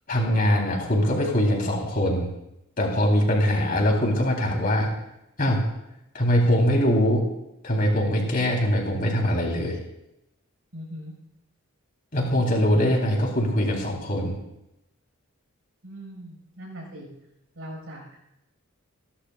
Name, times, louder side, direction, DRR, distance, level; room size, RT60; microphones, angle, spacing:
voice 1, 0.1-2.3 2.8-4.9 5.4-5.7 6.1-7.3 7.6-9.8 12.1-14.4, equal, 40° left, -1 dB, 3.9 m, -22 dB
voice 2, 10.7-11.1 15.8-17.1 17.5-18.2, equal, 65° right, 0 dB, 5.9 m, -40 dB
28.0 x 11.5 x 2.5 m, 0.87 s
head